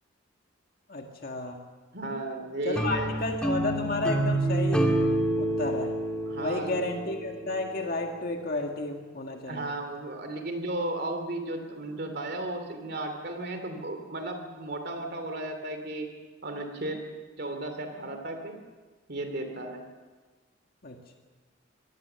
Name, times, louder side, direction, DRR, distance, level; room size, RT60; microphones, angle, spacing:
voice 1, 0.9-1.6 2.6-4.9 5.4-5.9 6.4-9.7 20.8-21.1, left 2 dB, 50° left, 2 dB, 1.8 m, -32 dB
voice 2, 1.9-3.2 6.3-6.9 9.4-16.1 16.4-17.1 17.4-18.5 19.1-19.8, right 2 dB, 55° right, 5 dB, 2.8 m, -34 dB
sound 1, 2.8-7.9, right 1 dB, 5° left, 2.1 m, -28 dB
24.5 x 18.0 x 6.9 m, 1.3 s
head